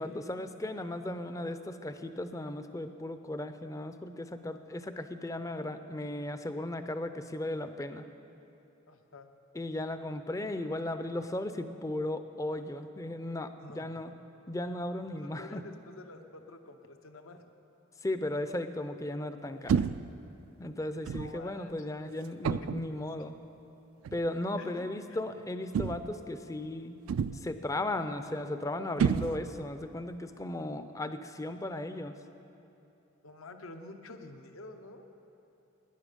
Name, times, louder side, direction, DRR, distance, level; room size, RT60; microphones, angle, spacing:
voice 1, 0.0-8.0 9.5-14.1 14.5-15.6 18.0-19.9 20.6-23.4 24.1-27.0 27.3-32.2, left 1 dB, 15° left, 10 dB, 0.4 m, -36 dB
voice 2, 8.9-9.3 13.6-14.1 15.1-17.5 21.1-22.1 22.6-22.7 24.6-25.3 33.2-35.1, left 2 dB, 85° left, 6 dB, 0.9 m, -49 dB
sound 1, 19.7-20.2 21.1-21.4 22.4-22.9 24.0-24.3 25.7-26.2 27.1-27.6 29.0-29.7, right 6 dB, 85° right, 0.3 m, -30 dB
18.0 x 10.0 x 5.2 m, 2.9 s
head